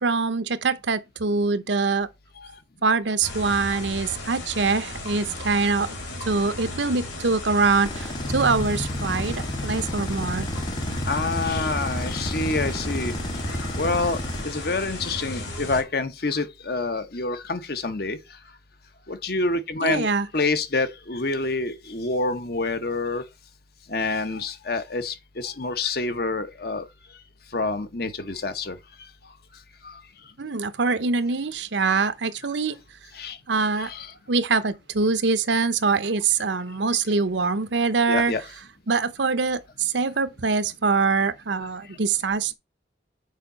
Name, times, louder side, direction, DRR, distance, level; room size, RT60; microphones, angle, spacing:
voice 1, 0.0-2.1 2.8-6.0 6.2-10.5 19.8-20.3 30.4-32.8 33.5-33.9 34.3-38.3 38.9-42.5, right 4 dB, 70° right, 0.8 m, -24 dB
sound 1, 3.2-15.8, left 1 dB, 85° left, 3.1 m, -35 dB
sound 2, 7.8-14.4, left 1 dB, 25° left, 0.8 m, -31 dB
voice 2, 11.1-13.1 13.8-18.2 19.1-23.2 23.9-26.9 27.5-28.8 29.8-30.0 33.1-33.4 33.8-34.1 38.1-38.4, left 3 dB, 55° left, 0.9 m, -27 dB
6.5 x 4.8 x 5.4 m
head